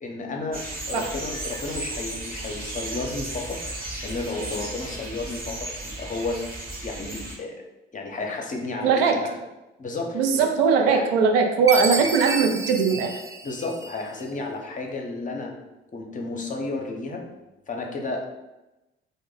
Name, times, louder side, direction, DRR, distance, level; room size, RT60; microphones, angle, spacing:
voice 1, 0.0-7.5 7.9-9.2 9.8-10.5 10.8-11.0 11.8-12.0 13.4-15.5 15.9-17.2 17.7-18.2, left 3 dB, 25° left, 1 dB, 0.7 m, -32 dB
sound 1, 0.5-7.4, right 2 dB, 30° right, 0.8 m, -35 dB
voice 2, 8.8-9.1 10.1-13.1, right 5 dB, 70° right, 3 dB, 0.5 m, -20 dB
Chime, 11.7-14.2, right 3 dB, 10° right, 0.4 m, -30 dB
2.8 x 2.1 x 3.8 m, 1.0 s
figure-of-eight pair, 45°, 30 cm